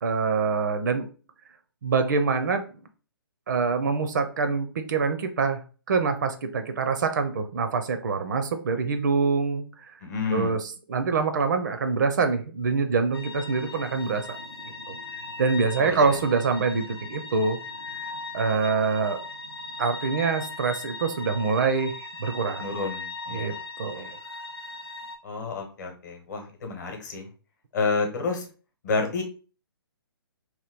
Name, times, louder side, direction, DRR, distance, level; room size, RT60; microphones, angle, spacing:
voice 1, 0.0-1.0 1.8-2.6 3.5-5.6 5.9-9.6 10.3-14.4 14.9-15.0 15.4-17.6 18.3-19.2 19.8-21.9 22.2-22.6 23.3-24.1, right 4 dB, 50° right, 8 dB, 0.5 m, -25 dB
voice 2, 10.0-10.5 15.8-16.2 22.6-23.6 24.0-24.1 25.2-27.3 27.7-28.4 28.8-29.2, left 4 dB, 45° left, 4 dB, 0.9 m, -30 dB
sound 1, 13.1-25.2, left 3 dB, 85° left, 0.5 m, -39 dB
2.9 x 2.3 x 3.4 m, 0.37 s
figure-of-eight pair, 130°, 13 cm